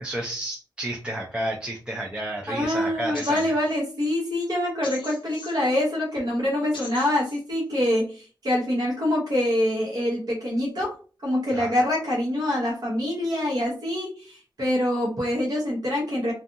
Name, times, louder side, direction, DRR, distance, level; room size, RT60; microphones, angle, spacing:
voice 1, 0.0-3.5 11.5-11.7, right 1 dB, 10° right, -2 dB, 0.4 m, -31 dB
voice 2, 2.5-11.0 11.2-16.3, left 1 dB, 50° right, -4 dB, 0.8 m, -25 dB
sound 1, 3.1-3.8 4.8-5.8 6.7-7.4, left 4 dB, 70° left, 0.7 m, -41 dB
2.6 x 2.4 x 2.5 m, 0.37 s
wide cardioid pair, 150°, 8 cm